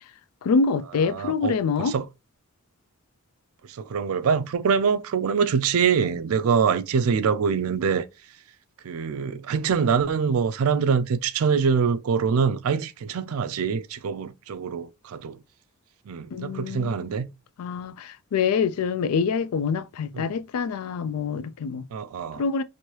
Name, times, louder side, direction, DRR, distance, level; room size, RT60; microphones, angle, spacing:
voice 1, 0.4-2.0 16.3-17.1 17.6-21.8 22.4-22.6, left 5 dB, 80° left, 0.3 m, -25 dB
voice 2, 1.1-2.1 3.7-8.1 8.8-15.4 16.1-17.3 20.1-20.3 21.9-22.4, right 6 dB, 70° right, 0.4 m, -24 dB
3.1 x 2.6 x 2.9 m
head